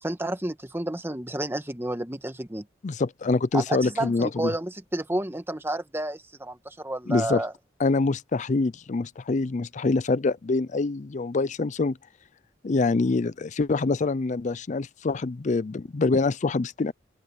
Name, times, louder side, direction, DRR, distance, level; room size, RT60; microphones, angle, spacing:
voice 1, 0.0-2.6 3.5-7.5, right 1 dB, 15° right, 1.4 m, -30 dB
voice 2, 2.8-4.5 7.1-7.4 7.8-12.0 12.6-16.9, left 3 dB, 40° left, 0.5 m, -25 dB
open air
head